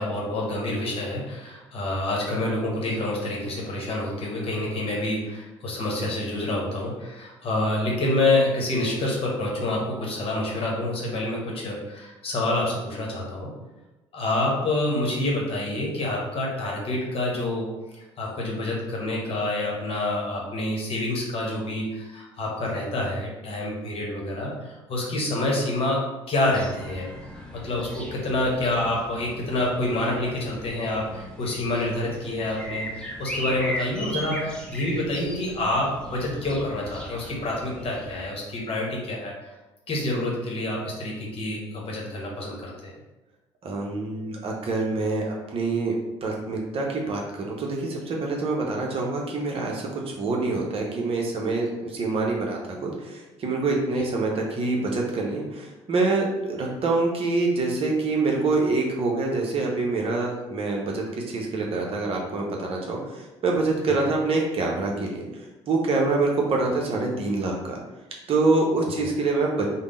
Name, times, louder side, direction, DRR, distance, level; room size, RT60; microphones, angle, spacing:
voice 1, 0.0-13.5 14.1-17.7 18.2-27.1 27.5-39.5 39.9-42.9 63.9-64.0, left 1 dB, 40° left, -2 dB, 1.1 m, -27 dB
sound 1, 26.4-38.3, equal, 5° left, 0.7 m, -38 dB
voice 2, 43.6-45.9 46.2-65.2 65.7-67.8 68.3-69.7, right 3 dB, 40° right, -1 dB, 0.8 m, -26 dB
3.6 x 2.1 x 3.6 m, 1.1 s
figure-of-eight pair, 50°, 15 cm